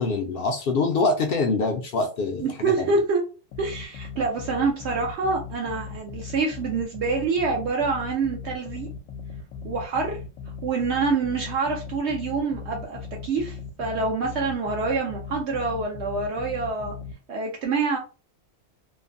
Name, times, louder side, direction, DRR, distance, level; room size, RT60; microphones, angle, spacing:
voice 1, 0.0-2.9, left 3 dB, 60° left, 3 dB, 0.6 m, -25 dB
voice 2, 2.4-3.2 3.6-8.9 9.6-10.2 10.6-16.9 17.3-18.0, right 4 dB, 65° right, 0 dB, 0.8 m, -26 dB
sound 1, 3.5-17.1, left 5 dB, 80° left, 0.9 m, -38 dB
3.1 x 2.1 x 2.5 m, 0.33 s
omnidirectional pair, 1.3 m